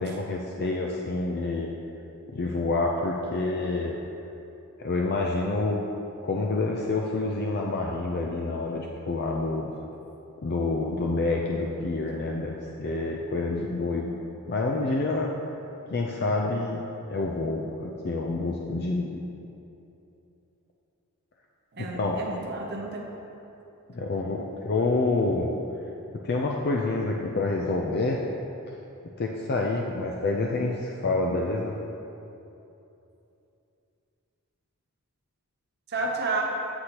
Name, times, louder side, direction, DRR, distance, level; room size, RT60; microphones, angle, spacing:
voice 1, 0.0-1.7 2.3-4.0 4.8-5.8 6.2-9.7 10.4-14.1 14.5-15.3 15.9-19.2 21.8-22.2 23.9-25.5 26.2-28.2 29.2-31.7, left 3 dB, 45° left, 0 dB, 0.4 m, -28 dB
voice 2, 21.7-23.0 35.9-36.4, right 3 dB, 50° right, 0 dB, 0.7 m, -31 dB
8.1 x 7.8 x 2.9 m, 2.9 s
head